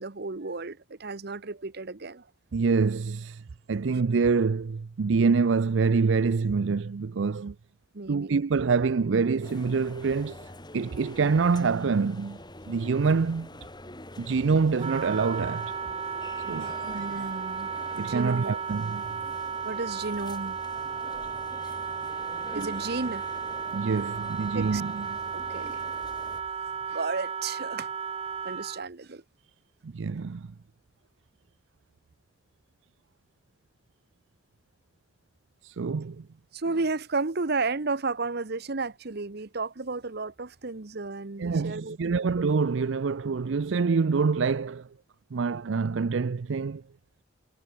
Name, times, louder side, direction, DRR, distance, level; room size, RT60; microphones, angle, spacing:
voice 1, 0.0-2.3 7.9-8.3 16.6-18.5 19.6-20.6 21.6-21.7 22.5-23.2 24.5-24.8 25.3-25.8 26.9-27.9 28.4-29.2 36.5-42.0, right 3 dB, 55° right, 1.1 m, -33 dB
voice 2, 2.5-7.5 8.1-12.4 12.7-13.5 14.2-15.7 16.4-16.7 18.0-19.1 23.7-25.2 29.8-30.5 35.6-36.3 41.4-44.9 45.3-46.8, right 4 dB, 75° right, 0.5 m, -26 dB
sound 1, 9.4-26.4, left 1 dB, 25° left, 6.8 m, -46 dB
Wind instrument woodwind instrument, 14.8-28.9, right 6 dB, 30° right, 0.6 m, -34 dB
head